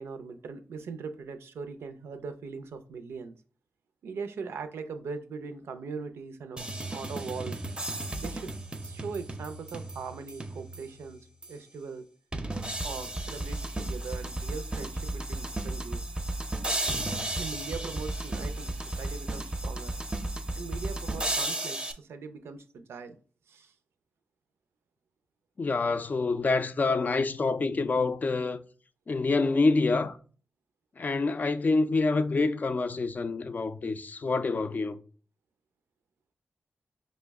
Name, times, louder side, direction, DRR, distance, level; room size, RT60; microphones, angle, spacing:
voice 1, 0.0-3.3 4.0-7.6 8.2-8.5 8.8-11.2 11.5-12.1 12.8-16.0 17.4-19.9 20.5-23.2 23.5-23.7, right 5 dB, 85° right, 0.4 m, -40 dB
sound 1, 6.6-11.0 11.4-11.5 12.3-21.9, right 2 dB, 20° right, 0.5 m, -34 dB
voice 2, 25.6-28.6 29.1-30.2 31.0-35.0, left 3 dB, 45° left, 0.3 m, -27 dB
5.1 x 2.1 x 3.4 m
cardioid pair, 60°, 4 cm